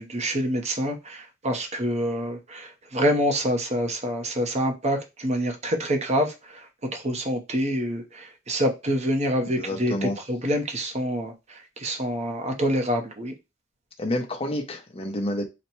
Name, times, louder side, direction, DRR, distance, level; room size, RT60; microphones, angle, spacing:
voice 1, 0.0-6.7 6.9-13.3, equal, 35° right, 0.8 m, -26 dB
voice 2, 9.6-10.2 14.0-15.4, left 1 dB, 30° left, 0.8 m, -29 dB
4.1 x 2.2 x 4.4 m
head